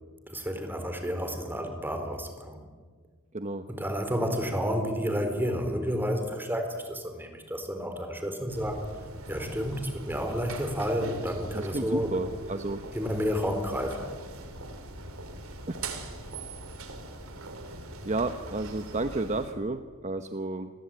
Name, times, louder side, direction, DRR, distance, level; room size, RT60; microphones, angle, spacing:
voice 1, 0.3-2.6 3.7-8.8 9.3-12.1 12.9-14.2, equal, 10° right, 6 dB, 4.2 m, -31 dB
voice 2, 3.3-3.6 11.5-12.8 15.7-15.8 17.8-20.7, right 2 dB, 35° right, 8 dB, 1.0 m, -32 dB
sound 1, 8.5-19.5, right 2 dB, 70° right, 3.7 m, -41 dB
29.5 x 22.0 x 9.0 m, 1.5 s
head